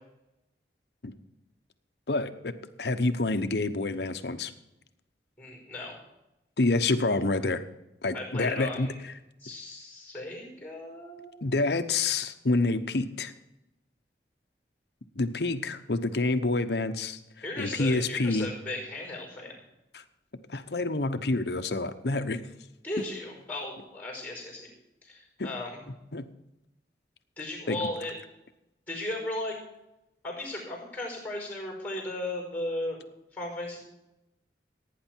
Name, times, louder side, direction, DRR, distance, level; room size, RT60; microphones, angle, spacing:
voice 1, 2.1-2.5 2.8-4.5 6.6-7.6 8.0-8.9 11.4-13.3 15.2-17.2 17.6-18.5 19.9-20.0 20.5-22.4 25.4-25.5 26.1-26.2 27.7-27.8, left 3 dB, 70° left, 9 dB, 0.9 m, -27 dB
voice 2, 5.4-5.9 8.1-9.0 9.4-11.5 17.4-19.5 22.8-24.7 25.0-25.8 27.4-28.1 28.9-29.6 30.2-33.0 33.3-33.8, left 1 dB, 10° left, 0 dB, 5.0 m, -36 dB
17.0 x 9.5 x 4.5 m, 0.91 s
head